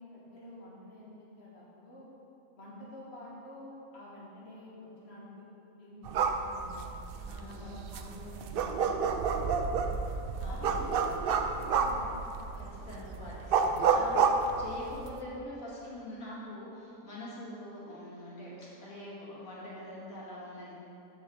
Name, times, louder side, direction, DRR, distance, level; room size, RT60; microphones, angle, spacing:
voice 1, 0.0-2.1 2.5-5.5 5.8-6.9 7.5-9.1 9.4-10.0 10.5-12.3, left 1 dB, 45° left, -7 dB, 1.9 m, -49 dB
sound 1, 6.0-15.2, right 5 dB, 75° right, 0.5 m, -30 dB
voice 2, 7.3-7.6 10.4-10.7 12.5-14.3 14.6-20.7, left 1 dB, 70° left, -7 dB, 2.4 m, -44 dB
7.3 x 4.8 x 6.9 m, 2.9 s
omnidirectional pair, 1.5 m